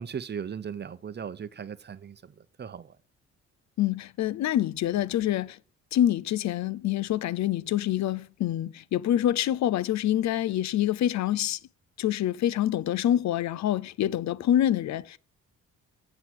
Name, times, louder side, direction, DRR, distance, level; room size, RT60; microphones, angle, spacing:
voice 1, 0.0-3.0, right 7 dB, 35° right, 0.8 m, -38 dB
voice 2, 3.8-5.6 5.9-11.6 12.0-15.2, left 12 dB, 65° left, 0.6 m, -26 dB
8.0 x 7.7 x 6.3 m
cardioid pair, 90°, 30 cm